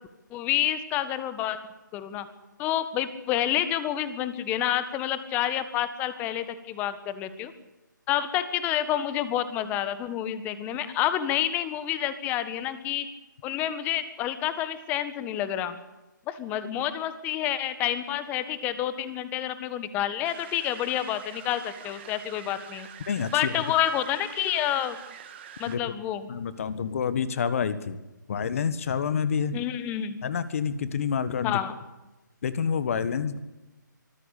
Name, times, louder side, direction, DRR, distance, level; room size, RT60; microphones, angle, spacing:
voice 1, 0.3-1.6 1.9-2.3 2.6-7.5 8.1-13.1 13.4-15.8 16.3-22.9 23.3-25.0 25.6-26.3 29.5-30.2 31.4-31.7, left 11 dB, 15° left, 13 dB, 1.5 m, -28 dB
sound 1, 20.2-25.8, right 9 dB, 35° right, 2.4 m, -46 dB
voice 2, 23.1-23.6 25.7-26.0 26.3-28.0 28.3-29.6 30.2-31.6 32.4-33.4, left 6 dB, 45° left, 14 dB, 1.6 m, -28 dB
24.5 x 15.0 x 8.4 m, 1.1 s
figure-of-eight pair, 150°, 11 cm